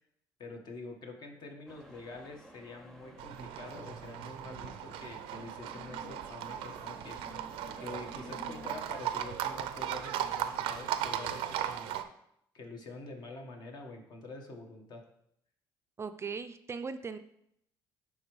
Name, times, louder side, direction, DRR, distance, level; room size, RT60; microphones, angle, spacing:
voice 1, 0.4-7.2 7.8-12.0 12.5-15.1, left 3 dB, 50° left, 3 dB, 1.3 m, -46 dB
sound 1, 1.7-8.7, left 1 dB, 5° left, 0.8 m, -52 dB
Livestock farm animals working animals, 3.2-12.0, right 11 dB, 85° right, 0.5 m, -37 dB
voice 2, 16.0-17.2, right 5 dB, 30° right, 10 dB, 0.4 m, -38 dB
10.0 x 3.6 x 3.2 m, 0.73 s
cardioid pair, 90°, 9 cm